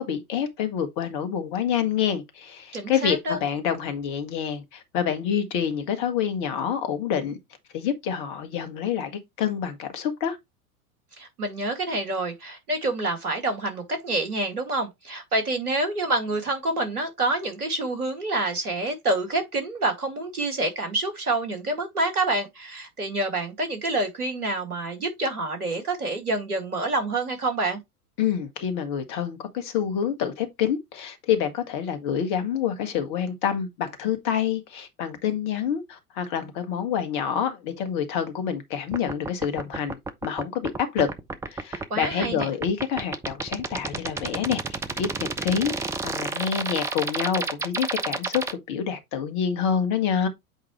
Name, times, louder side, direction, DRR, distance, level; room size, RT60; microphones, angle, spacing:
voice 1, 0.0-7.4 7.7-10.4 28.2-41.1 41.5-50.3, left 8 dB, 45° left, 1.8 m, -27 dB
voice 2, 2.7-3.4 11.2-27.8 41.9-42.5, right 2 dB, 75° right, 2.1 m, -27 dB
sound 1, 38.9-48.5, right 3 dB, 5° right, 0.4 m, -29 dB
8.1 x 4.6 x 3.0 m
figure-of-eight pair, 85°, 45 cm